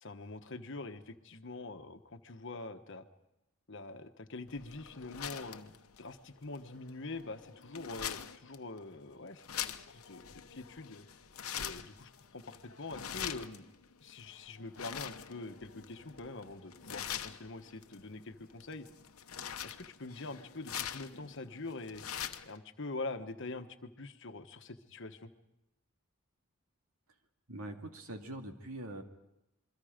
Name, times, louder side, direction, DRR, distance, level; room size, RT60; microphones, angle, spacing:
voice 1, 0.0-3.0 3.7-11.1 11.6-13.6 14.0-18.9 19.6-22.0 22.5-25.3, left 3 dB, 55° left, 7 dB, 1.3 m, -44 dB
sound 1, 4.5-22.6, left 9 dB, 75° left, 1.0 m, -44 dB
voice 2, 27.5-29.0, right 1 dB, 80° right, 4 dB, 2.4 m, -43 dB
28.0 x 23.0 x 5.2 m, 0.88 s
head